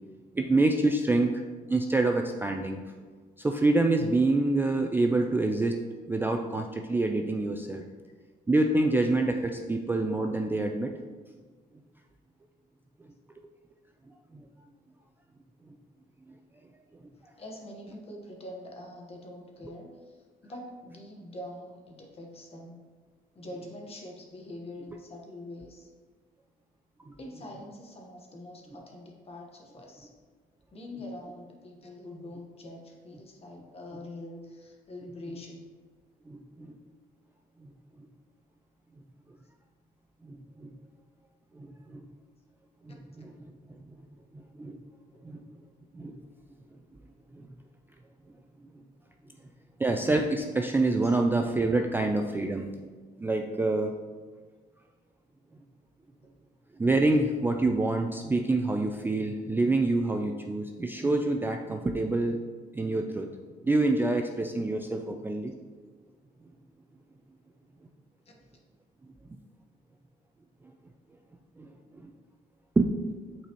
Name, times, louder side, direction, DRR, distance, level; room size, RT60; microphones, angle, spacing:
voice 1, 0.3-2.8 3.4-5.8 6.1-7.8 8.5-10.9 14.3-14.5 27.1-27.2 36.3-36.8 37.6-37.7 38.0-38.1 40.2-40.7 41.5-42.1 42.8-43.5 43.8-43.9 44.3-44.8 45.2-45.4 45.9-46.2 47.3-47.5 49.8-52.9 53.2-53.9 56.8-62.4 62.7-63.3 63.6-65.5 71.6-71.7 72.0-72.1 72.8-72.9, right 2 dB, 10° right, 4 dB, 0.3 m, -27 dB
voice 2, 17.1-22.8 23.3-25.9 27.2-30.1 30.7-35.7 45.3-45.4 49.2-49.6 51.0-51.2 68.2-68.3, left 1 dB, 35° left, 0 dB, 1.3 m, -44 dB
8.5 x 4.1 x 3.0 m, 1.4 s
cardioid pair, 110°, 17 cm